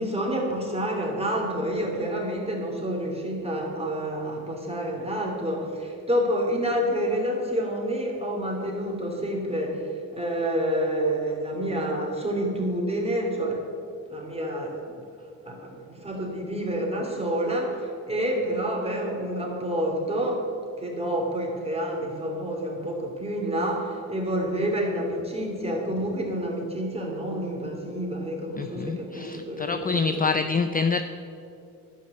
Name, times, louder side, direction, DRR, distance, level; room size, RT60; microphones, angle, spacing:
voice 1, 0.0-13.7 14.1-15.0 15.4-20.5 20.8-30.4, equal, 15° right, -1 dB, 3.0 m, -28 dB
voice 2, 28.6-31.0, left 5 dB, 25° left, 9 dB, 0.5 m, -26 dB
12.0 x 5.3 x 7.8 m, 2.5 s
cardioid pair, 75°, 36 cm